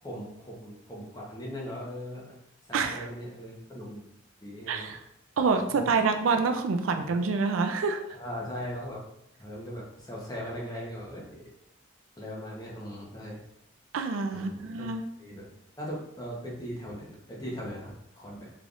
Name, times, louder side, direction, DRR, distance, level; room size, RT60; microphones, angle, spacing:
voice 1, 0.0-2.3 2.7-4.0 4.4-4.9 5.7-5.8 7.0-7.1 8.1-9.0 9.4-11.5 12.2-13.4 14.3-15.5 15.8-18.5, equal, 20° left, -4 dB, 0.8 m, -39 dB
voice 2, 2.7-3.1 4.7-5.0 5.4-8.0 13.9-15.0, right 4 dB, 85° right, 6 dB, 0.4 m, -27 dB
3.8 x 3.4 x 2.4 m, 0.77 s
head